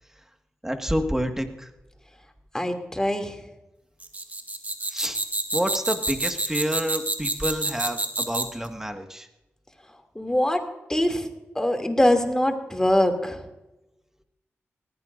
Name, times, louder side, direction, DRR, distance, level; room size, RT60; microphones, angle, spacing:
voice 1, 0.6-1.7 4.9-5.2 5.5-9.3, equal, 10° right, 6 dB, 1.8 m, -28 dB
voice 2, 2.5-3.4 10.1-10.6 10.9-11.3 11.5-13.4, left 1 dB, 15° left, 5 dB, 2.8 m, -23 dB
sound 1, 4.0-8.7, right 2 dB, 35° right, 2.1 m, -28 dB
19.0 x 15.0 x 2.6 m, 0.94 s
cardioid pair, 50°, 5 cm